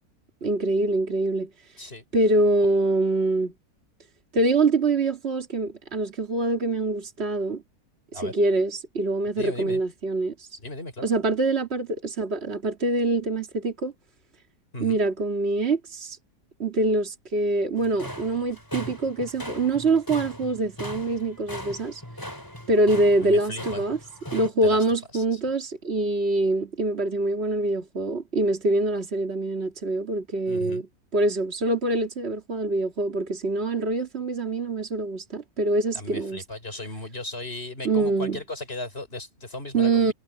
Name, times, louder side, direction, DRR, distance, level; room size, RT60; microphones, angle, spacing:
voice 1, 0.4-1.5 2.1-3.5 4.3-7.6 8.1-10.5 11.0-13.9 14.8-16.2 16.6-22.0 22.7-24.0 24.3-30.9 31.1-36.4 37.8-38.4 39.7-40.1, right 2 dB, 45° right, 2.8 m, -24 dB
voice 2, 9.4-9.8 10.6-11.1 14.7-15.0 23.2-23.8 24.6-24.8 25.1-25.4 30.5-30.8 35.9-40.1, left 2 dB, 40° left, 5.5 m, -36 dB
sound 1, 17.8-24.5, equal, 15° left, 5.2 m, -39 dB
omnidirectional pair, 1.6 m